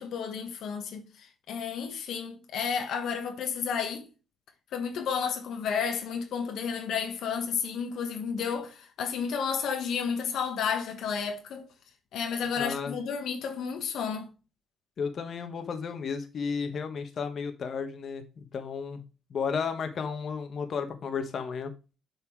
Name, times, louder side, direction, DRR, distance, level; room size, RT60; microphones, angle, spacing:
voice 1, 0.0-4.1 4.7-11.7 12.1-14.3, left 6 dB, 75° left, 1.2 m, -32 dB
voice 2, 12.6-12.9 15.0-19.0 19.3-21.7, left 6 dB, 55° left, 1.3 m, -33 dB
7.3 x 4.4 x 4.6 m
cardioid pair, 90°, 0 cm